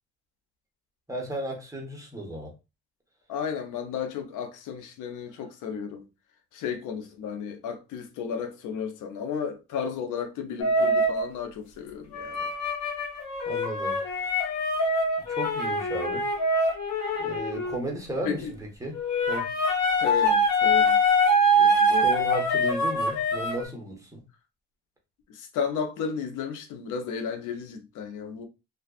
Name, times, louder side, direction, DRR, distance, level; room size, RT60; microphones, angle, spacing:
voice 1, 1.1-2.5 13.5-14.0 15.3-16.6 17.2-19.0 19.3-19.5 21.9-24.2, right 1 dB, 10° right, 0.9 m, -34 dB
voice 2, 3.3-6.0 6.5-12.5 18.2-18.5 20.0-21.0 21.5-22.1 25.3-28.5, left 7 dB, 85° left, 0.6 m, -33 dB
sound 1, 10.6-11.3 12.1-17.8 18.9-23.6, equal, 65° left, 1.1 m, -24 dB
2.4 x 2.3 x 2.3 m
cardioid pair, 90°, 30 cm